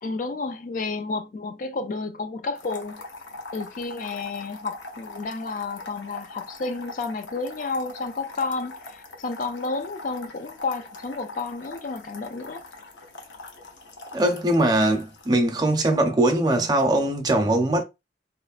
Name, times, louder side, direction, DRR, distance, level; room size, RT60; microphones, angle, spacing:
voice 1, 0.0-3.0 3.5-12.6, left 3 dB, 50° left, 0.4 m, -31 dB
sound 1, 2.6-15.3, left 2 dB, 85° left, 0.7 m, -42 dB
voice 2, 14.1-17.8, right 1 dB, 25° right, 0.5 m, -21 dB
3.0 x 2.0 x 2.4 m
head